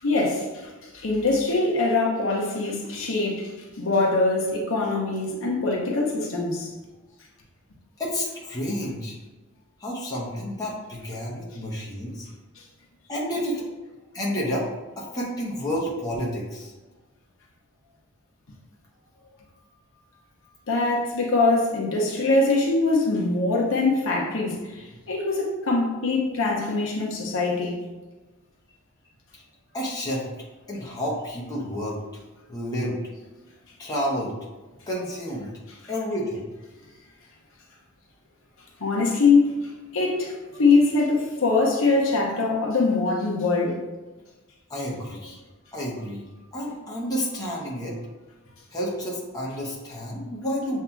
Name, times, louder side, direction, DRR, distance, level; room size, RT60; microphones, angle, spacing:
voice 1, 0.0-3.5 3.8-6.7 20.7-27.8 38.8-43.8, left 3 dB, 65° left, -2 dB, 0.8 m, -23 dB
voice 2, 8.0-9.2 9.8-12.3 13.1-13.7 14.1-14.7 15.0-16.7 29.7-30.2 30.7-32.0 32.5-33.0 33.8-34.3 34.8-35.5 35.9-36.5 44.7-45.4 45.7-46.2 46.5-48.0 48.7-50.8, equal, 20° left, -5 dB, 0.9 m, -30 dB
7.2 x 2.8 x 2.3 m, 1.2 s
head